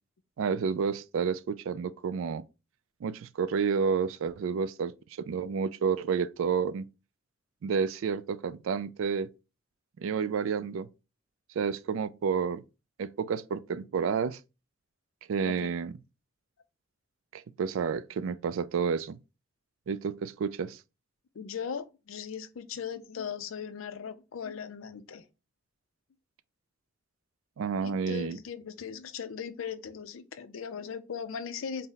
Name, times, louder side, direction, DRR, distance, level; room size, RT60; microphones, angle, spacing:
voice 1, 0.4-2.4 3.0-6.9 7.6-9.3 10.0-10.9 11.6-12.6 13.0-14.4 15.3-15.9 17.3-19.2 19.9-20.8 27.6-28.4, right 6 dB, 75° right, 0.3 m, -30 dB
voice 2, 21.4-25.2 27.8-31.9, left 7 dB, 80° left, 0.5 m, -38 dB
4.0 x 2.1 x 3.8 m
head